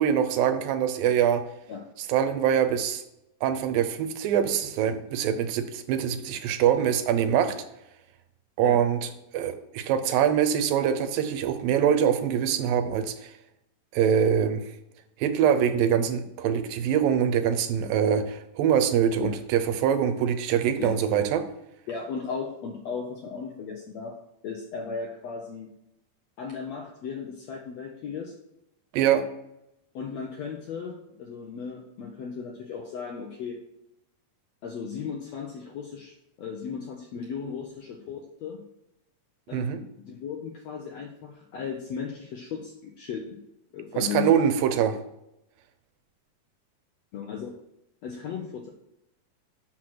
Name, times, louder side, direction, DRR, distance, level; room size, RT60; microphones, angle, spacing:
voice 1, 0.0-1.4 2.1-3.0 3.4-7.5 8.6-9.0 9.3-13.1 13.9-14.6 15.2-21.4 28.9-29.2 39.5-39.8 44.0-45.0, right 8 dB, 90° right, 9 dB, 2.5 m, -24 dB
voice 2, 21.9-24.2 24.4-25.7 26.4-28.3 29.9-33.6 34.6-38.6 39.5-43.4 43.7-44.4 47.1-47.6 48.0-48.7, left 6 dB, 75° left, 1 dB, 1.5 m, -36 dB
6.0 x 5.9 x 6.3 m, 0.84 s
omnidirectional pair, 4.0 m